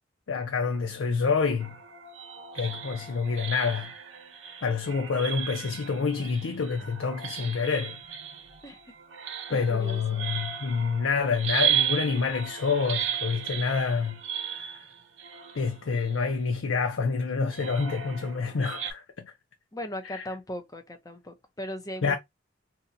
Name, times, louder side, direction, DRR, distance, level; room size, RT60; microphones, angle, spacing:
voice 1, 0.3-1.8 2.5-3.9 4.6-8.0 9.5-14.2 14.5-14.8 15.5-19.3 20.1-20.3 22.0-22.2, left 5 dB, 90° left, 0.5 m, -27 dB
sound 1, 1.6-16.5 17.5-18.9, right 9 dB, 70° right, 0.6 m, -35 dB
voice 2, 9.5-10.5 19.7-22.2, equal, 20° left, 0.6 m, -38 dB
2.7 x 2.2 x 3.8 m
head